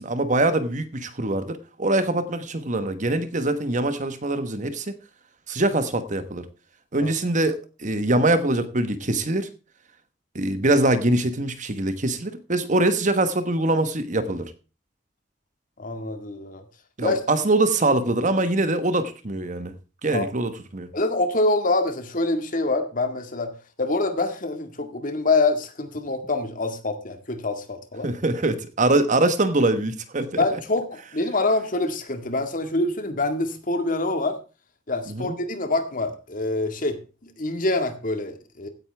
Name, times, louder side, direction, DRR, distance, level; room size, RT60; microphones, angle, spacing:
voice 1, 0.0-4.9 5.5-6.5 6.9-9.5 10.3-14.5 17.0-19.7 20.0-20.9 28.0-30.4 35.1-35.4, right 2 dB, 40° right, 1.3 m, -23 dB
voice 2, 15.8-16.6 17.0-17.2 20.1-20.3 20.9-23.5 23.8-28.1 30.4-34.4 34.9-38.7, left 2 dB, 45° left, 1.9 m, -25 dB
16.0 x 9.7 x 3.4 m
head